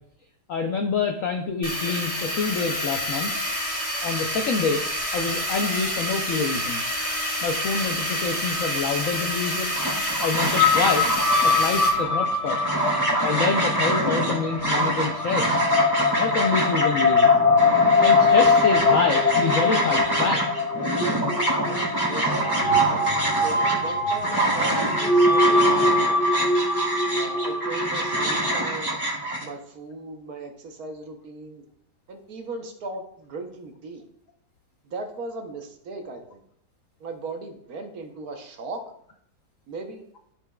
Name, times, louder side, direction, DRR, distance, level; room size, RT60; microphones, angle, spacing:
voice 1, 0.5-3.3 4.0-4.9 5.1-6.8 7.4-9.7 10.2-11.1 11.4-12.6 13.2-15.7 16.1-17.3 18.0-20.4, left 4 dB, 75° left, 5 dB, 0.7 m, -27 dB
sound 1, 1.6-11.9, equal, 10° left, 1.1 m, -28 dB
sound 2, 9.7-29.4, right 1 dB, 15° right, 2.0 m, -26 dB
sound 3, 10.6-28.7, left 3 dB, 50° left, 1.0 m, -22 dB
voice 2, 21.6-22.5 22.9-23.0 23.4-26.4 27.1-28.9 29.4-31.6 32.1-34.0 34.8-36.4 37.0-38.8 39.7-40.0, right 3 dB, 60° right, 4 dB, 1.2 m, -37 dB
12.5 x 4.6 x 2.2 m, 0.69 s
omnidirectional pair, 1.9 m